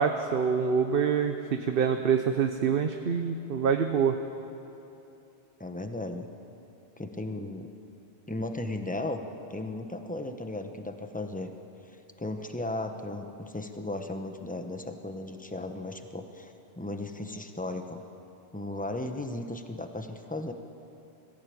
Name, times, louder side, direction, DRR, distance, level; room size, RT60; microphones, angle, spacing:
voice 1, 0.0-4.2, right 6 dB, 60° right, 6 dB, 1.0 m, -26 dB
voice 2, 5.6-6.3 7.0-7.7 8.3-9.2 9.5-11.5 11.8-18.0 18.5-20.5, left 2 dB, 10° left, 6 dB, 1.0 m, -36 dB
21.0 x 15.0 x 8.6 m, 2.9 s
omnidirectional pair, 1.1 m